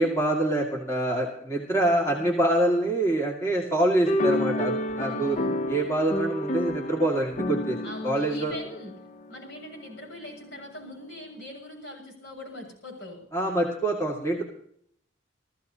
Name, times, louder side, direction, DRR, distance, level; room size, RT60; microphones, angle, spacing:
voice 1, 0.0-5.4 5.7-7.8 8.0-8.5 13.3-14.4, right 1 dB, 15° left, -1 dB, 2.0 m, -25 dB
voice 2, 1.8-2.4 5.0-5.6 7.8-13.3, left 1 dB, 60° left, 2 dB, 7.3 m, -42 dB
sound 1, 4.1-9.6, left 1 dB, 40° left, 0.6 m, -30 dB
29.0 x 14.5 x 2.8 m, 0.64 s
head